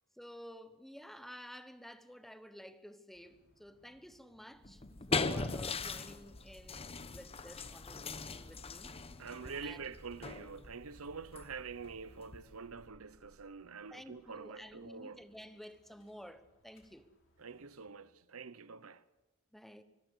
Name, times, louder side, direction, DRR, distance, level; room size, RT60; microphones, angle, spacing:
voice 1, 0.2-4.8 5.1-8.9 9.6-9.8 13.9-17.1 19.5-19.8, equal, ahead, 1.0 m, -52 dB
sound 1, 3.1-17.9, equal, 65° left, 5.3 m, -67 dB
sound 2, 4.6-12.7, left 4 dB, 30° left, 0.9 m, -40 dB
voice 2, 9.2-15.2 17.4-19.0, right 5 dB, 85° right, 0.9 m, -46 dB
25.5 x 15.0 x 8.1 m
head